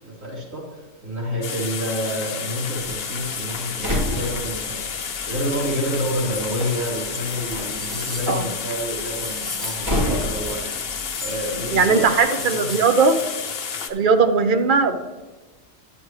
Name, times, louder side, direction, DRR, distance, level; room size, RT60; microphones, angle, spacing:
voice 1, 0.0-12.2 12.5-12.8, equal, 80° right, -6 dB, 3.4 m, -29 dB
sound 1, 1.4-13.9, left 6 dB, 55° left, 0.8 m, -30 dB
Slam, 2.8-12.2, left 1 dB, 20° right, 2.9 m, -32 dB
sound 2, 7.0-7.1 7.5-8.5 9.1-10.0 10.4-11.8 12.0-12.9 13.3-13.4, left 1 dB, ahead, 1.0 m, -37 dB
voice 2, 11.7-13.2 13.9-15.0, right 4 dB, 50° right, 8 dB, 0.6 m, -18 dB
11.0 x 8.0 x 3.2 m, 1.2 s
omnidirectional pair, 1.4 m